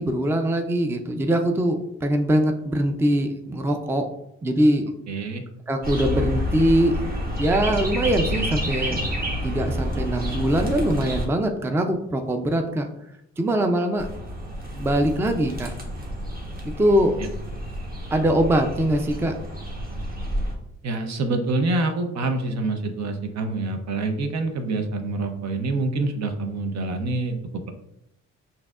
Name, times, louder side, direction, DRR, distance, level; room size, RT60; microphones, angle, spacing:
voice 1, 0.0-4.1 4.4-4.9 5.7-7.0 7.4-9.0 9.4-12.8 13.4-14.1 14.8-15.7 16.8-17.3 18.1-19.3, right 1 dB, 10° right, 5 dB, 0.4 m, -22 dB
voice 2, 5.1-5.4 20.8-27.7, right 2 dB, 60° right, 5 dB, 0.7 m, -26 dB
sound 1, 5.8-11.3 14.0-20.5, equal, 30° right, 1.1 m, -29 dB
6.0 x 2.7 x 2.4 m, 0.80 s
cardioid pair, 90°, 30 cm